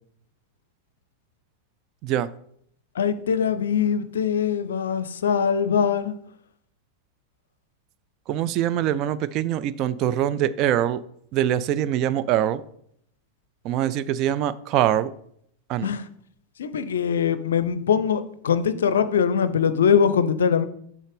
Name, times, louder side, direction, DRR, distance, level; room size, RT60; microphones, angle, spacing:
voice 1, 3.0-6.2 15.8-16.0 16.6-20.7, left 7 dB, 65° left, 13 dB, 0.5 m, -22 dB
voice 2, 8.3-11.0 11.3-12.6 13.6-15.1 15.7-15.9, right 11 dB, 40° right, 14 dB, 0.3 m, -23 dB
6.4 x 3.8 x 5.1 m, 0.68 s
figure-of-eight pair, 90°, 0 cm